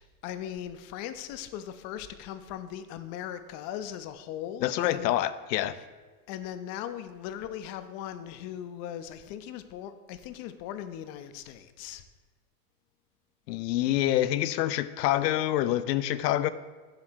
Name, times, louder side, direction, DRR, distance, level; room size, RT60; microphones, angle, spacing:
voice 1, 0.0-5.2 5.7-5.8 6.3-12.0, left 10 dB, 35° left, 10 dB, 0.4 m, -39 dB
voice 2, 4.6-5.8 13.5-16.5, left 13 dB, 90° left, 14 dB, 0.6 m, -26 dB
7.7 x 3.2 x 6.1 m, 1.4 s
supercardioid pair, 130°, 47 cm